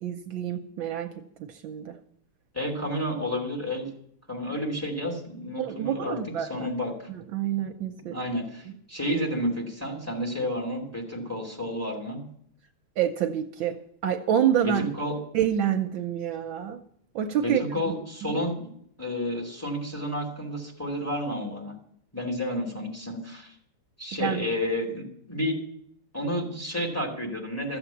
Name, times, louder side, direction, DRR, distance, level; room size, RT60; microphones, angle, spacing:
voice 1, 0.0-1.1 1.5-1.9 5.6-6.5 7.1-8.2 8.7-8.8 13.0-13.8 14.0-14.9 15.3-16.8 17.1-17.6 18.2-18.4 24.2-24.4, right 9 dB, 70° right, 6 dB, 1.4 m, -27 dB
voice 2, 2.5-3.9 4.3-7.1 8.1-12.2 14.6-15.2 17.4-18.7 19.0-21.8 22.1-23.5 24.0-25.6 26.1-27.8, equal, 5° left, 1 dB, 2.6 m, -31 dB
14.0 x 8.0 x 7.1 m, 0.68 s
omnidirectional pair, 2.3 m